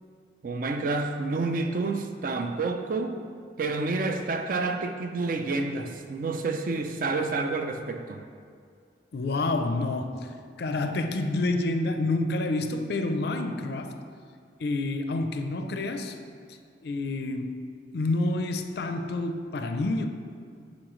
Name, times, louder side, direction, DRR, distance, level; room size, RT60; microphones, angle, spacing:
voice 1, 0.4-3.2 3.6-8.2, right 3 dB, 50° right, 6 dB, 0.4 m, -29 dB
voice 2, 9.1-14.0 14.6-16.2 16.8-17.6 17.9-20.1, left 2 dB, 60° left, 7 dB, 0.4 m, -28 dB
11.0 x 4.1 x 3.1 m, 2.3 s
head